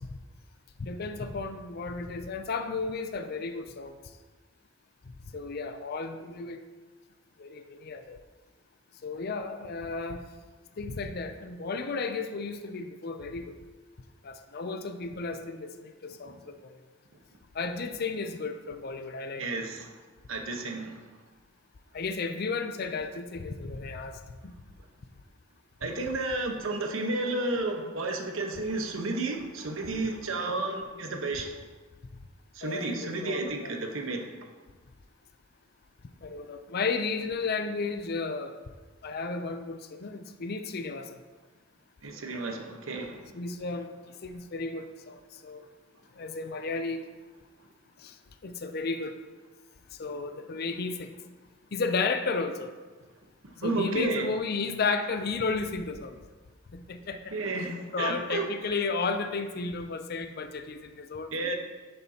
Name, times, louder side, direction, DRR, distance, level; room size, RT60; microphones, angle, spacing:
voice 1, 0.8-3.9 5.3-6.6 7.4-8.2 9.0-10.2 10.8-13.5 14.2-16.8 17.5-19.4 21.9-24.5 32.6-33.7 36.2-38.5 39.0-41.1 43.3-43.9 44.2-45.6 46.2-47.0 48.0-48.1 48.4-49.2 50.0-51.1 51.7-52.7 53.6-56.2 56.7-57.3 57.9-61.5, left 4 dB, 50° left, 8 dB, 0.5 m, -33 dB
voice 2, 19.4-20.0 20.3-21.0 25.8-31.5 32.5-34.3 42.0-43.2 53.4-54.3 57.3-58.5 61.3-61.5, right 2 dB, 85° right, 3 dB, 1.1 m, -32 dB
10.5 x 6.9 x 2.9 m, 1.3 s
head